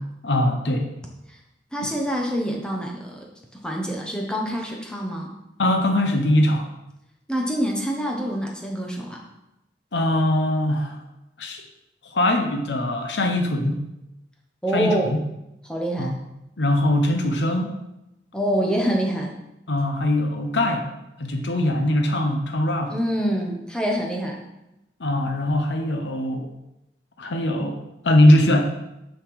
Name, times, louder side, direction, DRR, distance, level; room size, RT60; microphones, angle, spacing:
voice 1, 0.2-0.9 1.8-1.9 5.6-6.7 9.9-11.0 11.4-11.6 12.1-13.8 14.7-15.2 16.0-16.1 16.6-17.7 19.7-20.9 21.2-23.0 25.0-26.5 27.2-28.7, left 1 dB, 80° left, 5 dB, 0.9 m, -21 dB
voice 2, 1.7-3.2 3.6-5.3 7.3-9.2 14.6-15.1 15.6-16.2 18.3-19.3 22.9-24.4, equal, 5° left, -1 dB, 1.0 m, -26 dB
6.5 x 5.8 x 4.8 m, 0.91 s
head